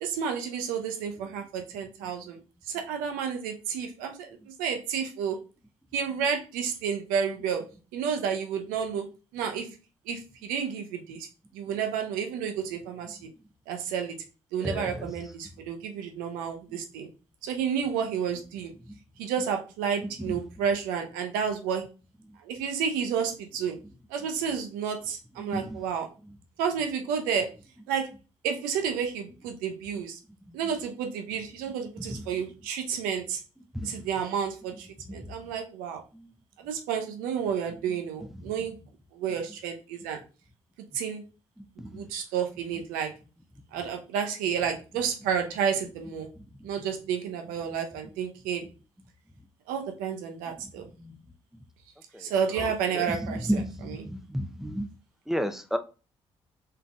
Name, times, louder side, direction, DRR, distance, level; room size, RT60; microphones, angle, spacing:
voice 1, 0.0-2.4 2.6-5.4 5.9-9.8 10.0-11.3 11.5-13.3 13.7-14.2 14.5-17.1 17.4-18.7 19.2-21.9 22.4-23.8 24.1-26.1 26.6-27.5 27.9-28.1 28.4-30.2 30.5-33.4 33.8-36.0 36.6-38.8 39.1-40.2 40.9-41.2 41.9-43.1 43.7-46.3 46.6-48.7 49.7-50.9 52.2-54.0, right 7 dB, 75° right, 0.9 m, -31 dB
voice 2, 14.6-15.1 18.9-19.0 25.4-25.8 32.0-32.2 33.7-34.0 35.2-35.3 36.1-36.3 41.8-42.0 51.0-51.1 52.1-52.3 52.6-54.8 55.3-55.8, equal, ahead, 0.7 m, -32 dB
5.6 x 3.7 x 2.4 m
hypercardioid pair, 45°, 14 cm